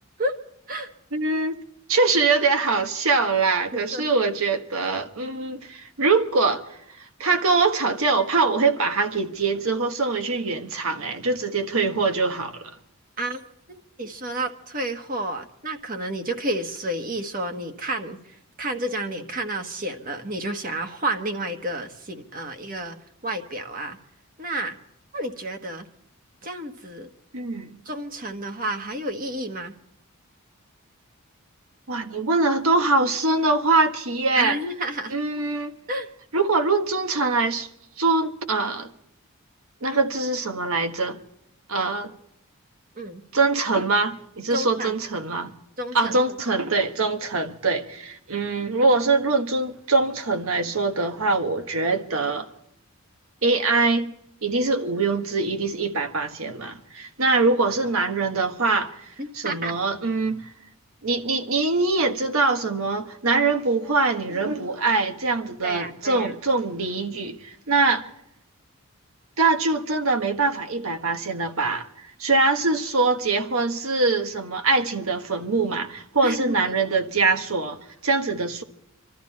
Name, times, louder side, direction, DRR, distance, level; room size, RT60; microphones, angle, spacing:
voice 1, 1.1-1.6 1.9-6.7 7.0-12.7 27.3-27.8 31.9-34.6 35.1-35.7 36.3-37.7 38.0-38.9 39.8-41.2 41.7-42.1 43.3-45.5 45.9-52.5 53.4-54.1 54.4-59.1 59.3-60.5 61.0-68.1 69.4-71.9 72.2-78.6, right 3 dB, 70° right, 1.5 m, -23 dB
voice 2, 3.7-4.0 13.2-13.4 13.7-23.0 23.2-24.0 24.4-24.8 25.1-25.9 26.4-27.1 27.8-29.7 34.3-35.2 35.9-36.1 39.9-40.0 42.9-43.2 44.5-45.0 45.8-46.2 47.0-47.1 59.2-59.8 65.6-66.3 76.2-76.7, right 1 dB, 40° right, 1.5 m, -30 dB
25.5 x 13.0 x 4.2 m
head